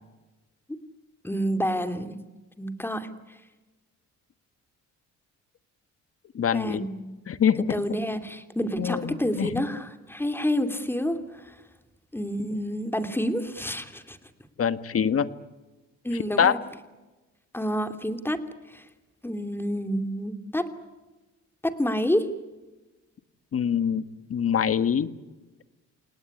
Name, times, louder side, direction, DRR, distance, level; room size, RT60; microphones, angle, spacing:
voice 1, 1.2-2.1 2.6-3.1 6.5-7.1 7.7-11.6 12.1-14.2 16.0-16.6 17.5-18.4 18.7-18.8 19.2-20.7 21.6-22.3, equal, 5° left, 8 dB, 2.8 m, -28 dB
voice 2, 6.3-6.9 7.3-7.6 8.8-9.6 14.6-15.3 16.4-16.6 23.5-25.1, left 8 dB, 50° left, 13 dB, 1.6 m, -24 dB
29.0 x 18.5 x 9.9 m, 1.2 s
cardioid pair, 90°, 30 cm